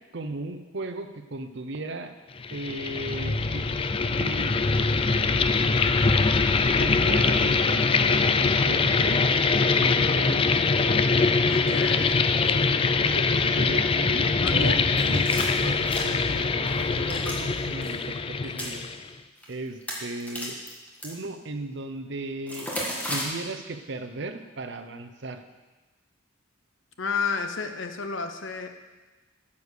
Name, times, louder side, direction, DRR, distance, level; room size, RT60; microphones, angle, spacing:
voice 1, 0.1-2.1 2.5-3.8 4.2-4.9 6.8-9.3 9.8-11.8 12.8-15.3 15.6-18.8 19.5-20.6 21.0-22.7 23.1-25.4, right 2 dB, 60° right, 8 dB, 0.8 m, -36 dB
sound 1, 2.4-19.1, left 4 dB, 25° left, 0.4 m, -23 dB
voice 2, 11.5-12.2 14.4-14.9 27.0-28.7, left 5 dB, 70° left, 7 dB, 0.9 m, -31 dB
sound 2, 15.0-16.3 16.7-17.4 17.7-17.9 18.4-18.7 19.4-19.5 19.8-21.1 22.5-23.2, equal, 10° left, 1.7 m, -33 dB
9.7 x 7.1 x 6.5 m, 1.2 s
head